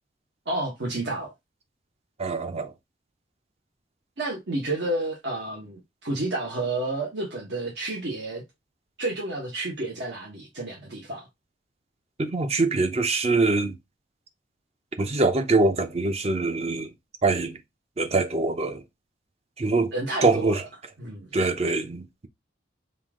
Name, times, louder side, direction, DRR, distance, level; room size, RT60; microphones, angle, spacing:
voice 1, 0.5-1.3 4.2-8.4 9.0-11.3 19.9-20.6 21.0-21.3, right 2 dB, 70° right, 1.3 m, -30 dB
voice 2, 2.2-2.7 12.2-13.8 15.0-16.9 17.2-17.6 18.0-18.8 19.6-19.9 20.2-20.6 21.3-22.3, right 3 dB, 35° right, 0.6 m, -24 dB
5.5 x 2.6 x 3.6 m
head